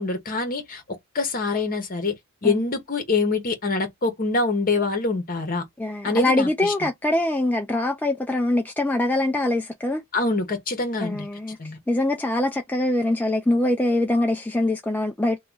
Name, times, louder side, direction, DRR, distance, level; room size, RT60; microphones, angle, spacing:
voice 1, 0.0-2.2 2.4-5.6 6.0-6.9 10.1-11.3 11.6-11.8, left 3 dB, 40° left, 1.0 m, -25 dB
voice 2, 5.8-10.0 11.0-11.6 11.9-15.4, left 1 dB, 10° left, 0.3 m, -23 dB
2.9 x 2.3 x 3.7 m
head